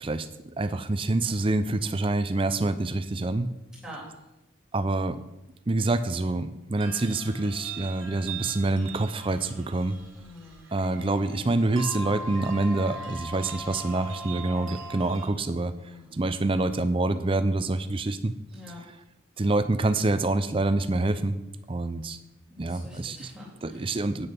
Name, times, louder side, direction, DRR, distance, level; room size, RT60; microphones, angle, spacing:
voice 1, 0.6-3.5 4.7-5.2 5.7-10.0 10.7-15.7 16.1-18.3 19.4-21.3 21.7-22.2 22.6-23.3 23.6-24.3, right 2 dB, 25° right, 12 dB, 0.5 m, -26 dB
sound 1, 6.8-15.3, right 3 dB, 85° right, 1.2 m, -40 dB
voice 2, 10.1-10.6 15.8-16.2 18.5-18.8 22.5-24.0, left 1 dB, 5° right, -6 dB, 3.0 m, -46 dB
8.8 x 6.5 x 5.9 m, 0.96 s
head